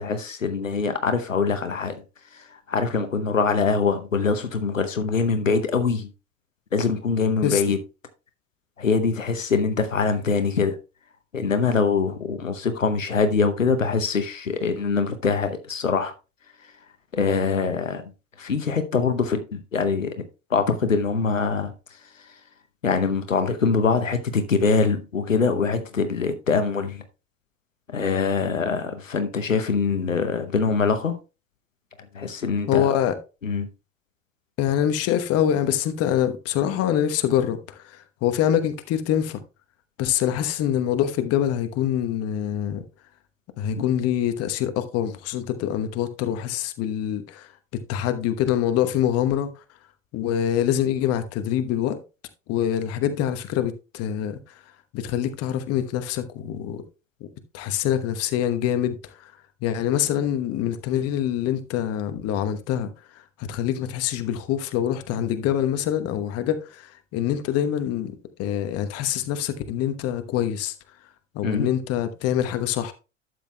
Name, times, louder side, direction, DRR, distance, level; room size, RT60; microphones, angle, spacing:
voice 1, 0.0-2.0 2.3-6.1 6.7-7.8 8.8-10.8 11.3-16.1 17.1-18.0 18.4-20.2 20.5-21.7 22.8-27.0 27.9-31.2 32.1-32.9 33.4-33.7 43.8-43.9 71.4-71.7, left 5 dB, 85° left, 0.9 m, -23 dB
voice 2, 7.4-7.7 32.7-33.1 34.6-39.4 40.0-42.8 43.6-47.5 47.9-49.5 50.1-52.0 52.5-54.4 54.9-56.8 57.5-59.3 59.6-62.9 63.4-70.7 71.3-72.9, left 10 dB, 40° left, 1.1 m, -25 dB
12.0 x 7.8 x 2.3 m
figure-of-eight pair, 75°, 38 cm